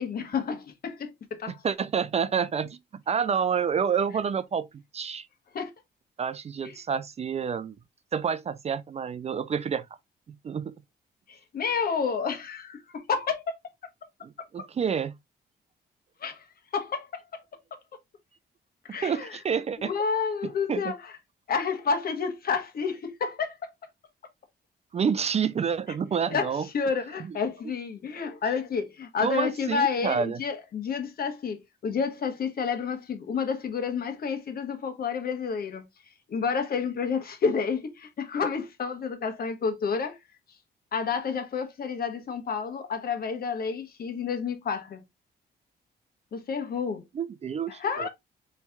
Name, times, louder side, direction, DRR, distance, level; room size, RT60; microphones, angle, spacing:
voice 1, 0.0-1.6 5.5-5.7 6.6-6.7 11.3-13.5 16.2-16.4 16.7-17.1 18.8-19.3 19.8-21.1 21.5-23.7 26.3-35.8 36.3-40.2 40.9-45.0 46.3-47.0 47.7-48.1, left 5 dB, 60° left, 1.2 m, -30 dB
voice 2, 1.5-2.8 3.1-4.7 4.9-5.3 6.2-7.8 8.1-9.9 10.4-10.7 14.2-15.1 19.0-19.9 20.7-20.9 24.9-26.7 29.2-30.4 47.1-48.1, right 7 dB, 35° right, 0.4 m, -28 dB
4.1 x 3.2 x 3.4 m
cardioid pair, 105°, 18 cm